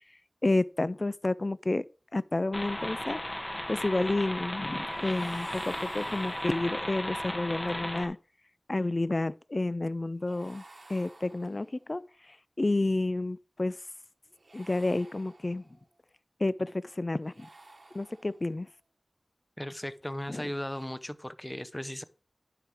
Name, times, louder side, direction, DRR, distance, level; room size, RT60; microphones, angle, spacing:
voice 1, 0.4-1.8 2.1-3.2 3.7-8.2 8.7-10.6 10.9-12.0 12.6-13.7 14.5-15.6 16.4-17.5 17.9-18.7 20.3-20.4, left 2 dB, 50° left, 0.3 m, -30 dB
sound 1, 2.5-8.1, left 1 dB, 35° left, 1.7 m, -35 dB
sound 2, 4.9-7.0 10.2-11.9 14.3-15.8 17.2-18.6 20.6-20.9, right 2 dB, 65° right, 1.1 m, -52 dB
voice 2, 19.6-22.0, left 1 dB, 20° left, 0.7 m, -37 dB
9.9 x 5.8 x 4.8 m
wide cardioid pair, 40°, 0 cm